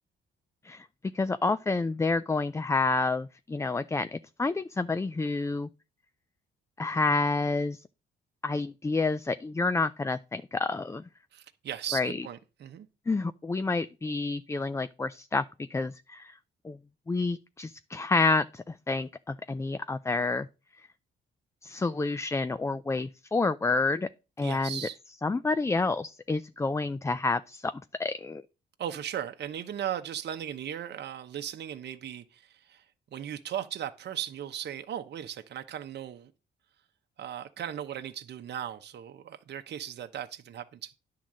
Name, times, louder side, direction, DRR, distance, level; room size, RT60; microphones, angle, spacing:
voice 1, 1.1-5.7 6.8-7.8 8.4-11.0 11.9-12.2 13.1-16.4 16.6-16.8 17.1-20.5 21.6-24.1 24.4-24.8 25.2-27.7 28.0-28.4, left 3 dB, 15° left, 0.4 m, -29 dB
voice 2, 11.3-12.9 24.4-25.0 28.8-32.8 33.1-36.3 37.2-40.9, right 10 dB, 60° right, 0.9 m, -37 dB
10.0 x 3.8 x 7.4 m
cardioid pair, 90°, 20 cm